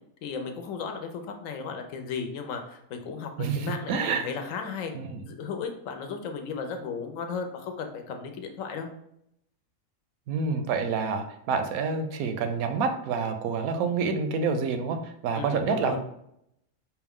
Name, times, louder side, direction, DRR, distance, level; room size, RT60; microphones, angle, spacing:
voice 1, 0.2-4.9 5.3-8.9 15.4-16.0, left 5 dB, 70° left, 5 dB, 1.0 m, -35 dB
voice 2, 3.4-4.2 4.9-5.2 10.3-16.0, right 5 dB, 85° right, 7 dB, 1.0 m, -28 dB
4.6 x 2.3 x 3.5 m, 0.76 s
omnidirectional pair, 1.5 m